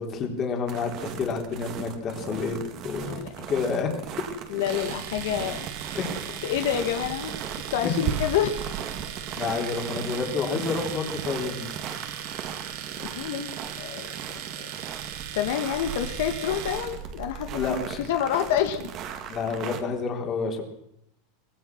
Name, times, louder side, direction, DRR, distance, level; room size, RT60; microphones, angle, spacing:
voice 1, 0.0-2.6 2.8-3.2 3.5-3.9 5.9-6.2 7.8-7.9 9.3-11.7 17.5-18.0 19.3-20.6, left 5 dB, 25° left, 3 dB, 3.8 m, -29 dB
sound 1, 0.7-19.8, right 8 dB, 35° right, 2.3 m, -37 dB
voice 2, 3.1-3.9 4.5-6.0 6.4-7.4 7.7-8.9 13.0-14.1 14.6-14.7 15.3-18.9, left 10 dB, 70° left, 6 dB, 1.9 m, -28 dB
Domestic sounds home sounds, 4.6-17.0, right 10 dB, 55° right, 3.9 m, -38 dB
24.0 x 19.0 x 6.2 m, 0.79 s
supercardioid pair, 160°, 0 cm